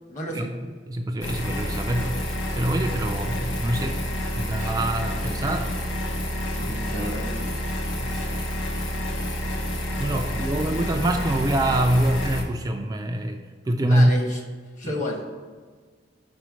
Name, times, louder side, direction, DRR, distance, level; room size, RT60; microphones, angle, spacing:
voice 1, 0.1-0.5 6.5-7.7 10.2-10.9 13.7-14.4 14.8-15.4, left 1 dB, 40° left, 1 dB, 1.2 m, -33 dB
voice 2, 0.9-2.2 2.6-4.0 4.3-5.7 6.6-7.1 8.0-8.3 10.0-13.4 13.7-14.1 14.8-14.9, right 1 dB, 20° right, 3 dB, 0.3 m, -25 dB
sound 1, 1.2-12.4, equal, 85° left, 1.0 m, -29 dB
5.7 x 4.4 x 6.2 m, 1.5 s
head